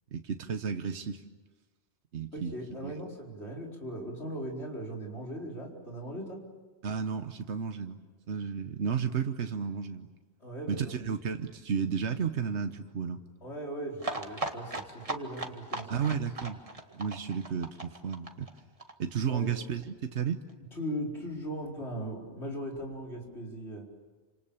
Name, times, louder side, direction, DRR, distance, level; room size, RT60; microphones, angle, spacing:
voice 1, 0.1-1.2 2.1-2.5 2.8-2.9 6.8-8.0 8.3-10.1 10.7-13.2 15.9-16.6 16.9-18.5 19.0-20.4, right 6 dB, 85° right, 7 dB, 1.4 m, -32 dB
voice 2, 2.3-6.4 10.4-11.0 13.4-16.0 19.3-19.5 20.7-23.9, equal, 80° left, -1 dB, 5.0 m, -39 dB
sound 1, 14.0-19.6 19.8-19.9 20.2-20.3 20.5-20.6, right 2 dB, 30° right, 1.9 m, -38 dB
29.5 x 27.0 x 7.2 m, 1.3 s
omnidirectional pair, 1.1 m